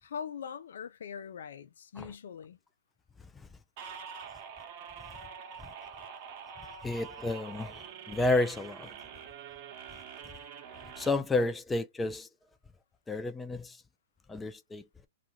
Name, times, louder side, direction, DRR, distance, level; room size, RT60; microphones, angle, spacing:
voice 1, 0.0-2.6, left 7 dB, 75° left, 0.4 m, -42 dB
sound 1, 3.8-11.1, right 7 dB, 45° right, 0.8 m, -46 dB
voice 2, 6.8-8.9 11.0-12.3 13.1-13.8 14.3-14.9, left 2 dB, 10° left, 0.4 m, -31 dB
2.5 x 2.4 x 2.9 m
hypercardioid pair, 125°, 0 cm